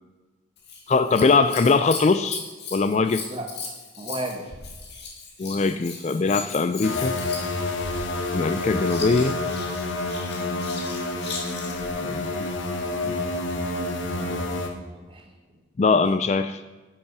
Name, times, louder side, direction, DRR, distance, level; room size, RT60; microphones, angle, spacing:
Scissors, 0.6-11.9 13.9-14.5 15.2-15.3, left 4 dB, 55° left, 2.0 m, -38 dB
voice 1, 0.9-2.4 2.7-3.2 5.4-7.1 8.3-9.4 12.0-12.5 13.0-13.2 15.8-16.6, left 4 dB, 35° left, 11 dB, 0.3 m, -21 dB
voice 2, 4.0-4.5 14.1-15.3, right 1 dB, 25° right, 3 dB, 1.3 m, -35 dB
sound 1, 6.8-14.7, left 2 dB, 75° left, 1.1 m, -28 dB
10.5 x 8.5 x 4.6 m, 1.2 s
head